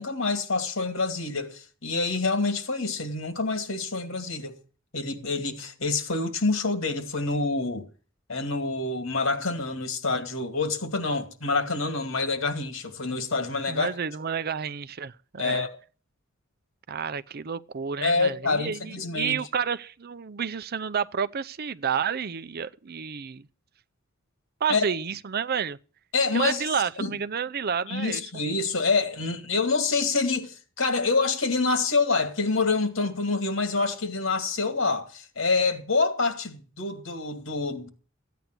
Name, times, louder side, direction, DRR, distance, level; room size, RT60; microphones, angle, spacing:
voice 1, 0.0-4.6 4.9-7.9 8.3-13.9 15.4-15.7 18.0-19.4 24.7-24.8 26.1-26.7 27.0-27.1 27.9-37.9, left 3 dB, 70° left, 2.4 m, -27 dB
voice 2, 13.7-15.7 16.9-23.5 24.6-25.8 26.3-28.2, right 7 dB, 50° right, 0.6 m, -30 dB
15.0 x 9.3 x 6.0 m
head